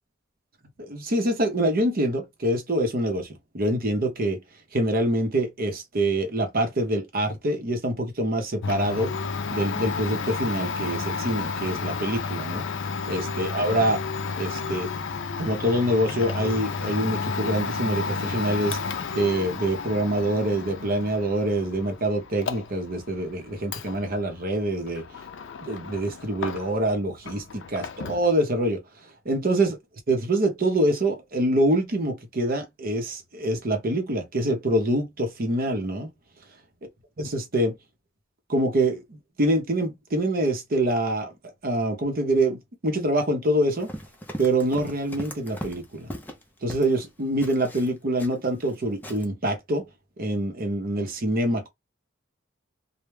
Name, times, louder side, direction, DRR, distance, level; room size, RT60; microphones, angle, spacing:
voice 1, 0.8-4.4 4.7-9.1 9.5-12.6 13.1-14.0 14.4-14.9 15.3-18.8 19.1-25.1 25.6-28.8 29.2-29.7 30.1-36.1 37.2-37.8 38.5-41.3 41.6-43.9 44.4-46.1 46.6-49.9 50.2-51.7, right 1 dB, 50° right, 0.7 m, -25 dB
Domestic sounds home sounds, 8.6-26.9 27.2-28.3, left 5 dB, 65° left, 0.4 m, -32 dB
Run, 43.7-47.0 47.4-48.8 49.0-49.2, equal, 10° left, 0.5 m, -39 dB
2.2 x 2.1 x 3.1 m
head